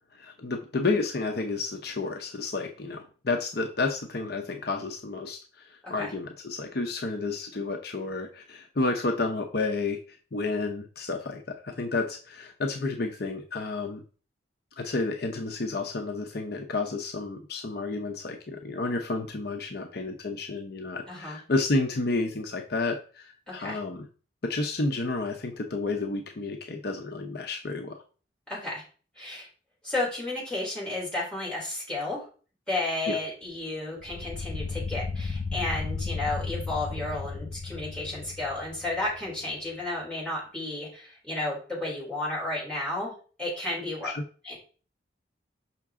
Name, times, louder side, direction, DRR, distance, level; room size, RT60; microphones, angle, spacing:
voice 1, 0.1-14.0 14.8-24.1 24.4-28.0 33.1-33.2 44.0-44.2, left 3 dB, 55° left, 3 dB, 0.7 m, -31 dB
voice 2, 21.1-21.4 23.5-23.8 28.5-28.8 29.2-29.5 29.8-32.2 32.7-43.1 43.4-44.1 44.4-44.6, left 2 dB, 5° left, -6 dB, 3.6 m, -32 dB
sound 1, 34.0-39.3, left 4 dB, 30° left, 0.3 m, -34 dB
6.0 x 5.8 x 3.6 m, 0.39 s
head